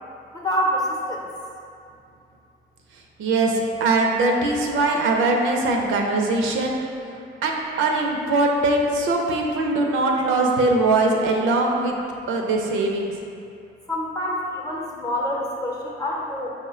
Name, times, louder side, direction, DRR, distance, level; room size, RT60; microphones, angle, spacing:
voice 1, 0.3-1.2 10.1-10.2 13.9-16.5, equal, 20° left, -2 dB, 0.7 m, -26 dB
voice 2, 3.2-6.8 7.4-12.0 12.3-13.1, right 2 dB, 80° right, 1 dB, 0.5 m, -21 dB
4.8 x 2.1 x 3.6 m, 2.5 s
cardioid pair, 90°, 20 cm